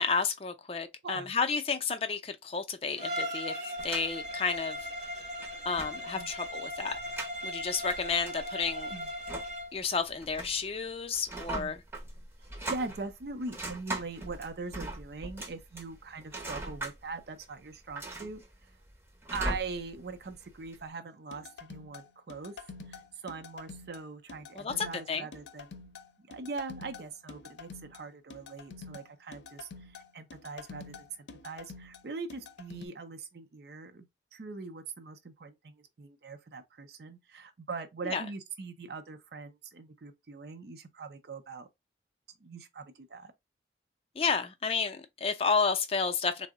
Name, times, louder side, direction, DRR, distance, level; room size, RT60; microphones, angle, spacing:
voice 1, 0.0-3.5 3.8-4.8 5.7-7.0 7.4-8.9 9.7-11.8 24.6-25.3 38.1-38.2 44.2-46.5, left 5 dB, 30° left, 0.4 m, -31 dB
voice 2, 1.0-1.3 6.1-6.3 8.9-9.1 11.5-11.8 12.4-18.4 19.3-22.5 22.9-25.7 26.2-34.1 34.3-41.7 42.4-43.3, right 4 dB, 65° right, 0.5 m, -41 dB
Bowed string instrument, 3.0-9.8, equal, 40° right, 0.8 m, -38 dB
sound 1, 3.8-20.8, right 2 dB, 15° right, 0.6 m, -42 dB
sound 2, 21.3-32.9, left 4 dB, 85° left, 0.6 m, -48 dB
3.6 x 2.0 x 3.5 m
head